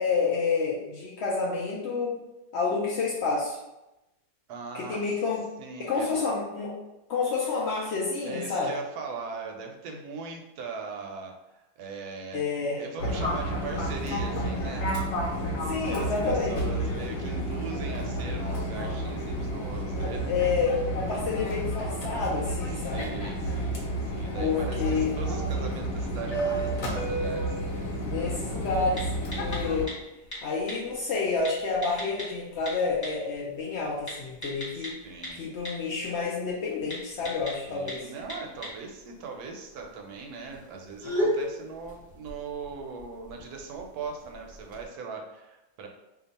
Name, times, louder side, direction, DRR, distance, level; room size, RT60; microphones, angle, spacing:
voice 1, 0.0-2.2 2.5-3.6 4.7-5.4 5.8-6.8 7.1-8.7 12.3-12.8 15.6-16.8 19.9-23.1 24.4-25.2 28.0-29.1 29.3-29.9 30.4-35.0 35.3-38.1, left 4 dB, 80° left, -4 dB, 0.5 m, -29 dB
voice 2, 4.5-5.1 5.6-6.2 8.2-14.9 15.7-20.3 22.8-27.5 34.7-35.4 37.7-45.9, right 4 dB, 75° right, 2 dB, 1.1 m, -40 dB
Fixed-wing aircraft airplane, 13.0-29.9, right 1 dB, 60° left, 1.0 m, -31 dB
sound 1, 26.6-44.9, equal, 15° left, 0.8 m, -39 dB
2.8 x 2.3 x 4.0 m, 0.96 s
omnidirectional pair, 1.8 m